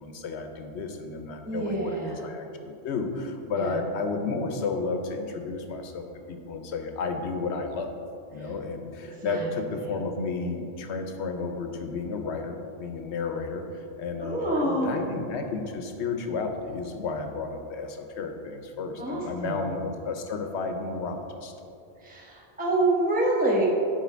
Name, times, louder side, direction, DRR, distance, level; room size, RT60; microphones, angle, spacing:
voice 1, 0.0-7.9 8.3-21.5, left 4 dB, 85° left, 5 dB, 1.0 m, -32 dB
voice 2, 1.4-2.3 3.5-3.8 8.4-8.5 9.2-9.5 14.2-14.9 19.0-19.6 22.0-23.7, right 2 dB, 10° right, -4 dB, 0.8 m, -27 dB
8.2 x 4.6 x 4.5 m, 2.7 s
omnidirectional pair, 1.1 m